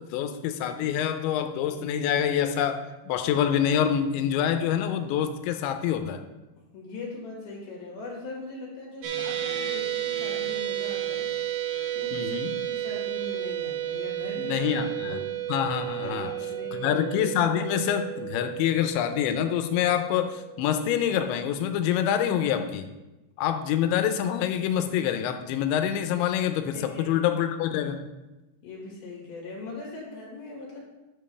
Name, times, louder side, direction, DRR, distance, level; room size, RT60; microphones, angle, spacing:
voice 1, 0.0-6.2 12.1-12.5 14.4-15.2 15.5-16.3 16.7-22.9 23.4-28.1, left 9 dB, 85° left, 7 dB, 3.0 m, -26 dB
voice 2, 6.6-11.3 11.9-12.3 12.7-15.2 15.8-16.9 26.7-27.2 28.6-30.8, left 2 dB, 60° left, -3 dB, 3.3 m, -40 dB
sound 1, 9.0-21.4, right 12 dB, 75° right, 2.0 m, -32 dB
10.0 x 7.6 x 3.3 m, 1.0 s
omnidirectional pair, 5.2 m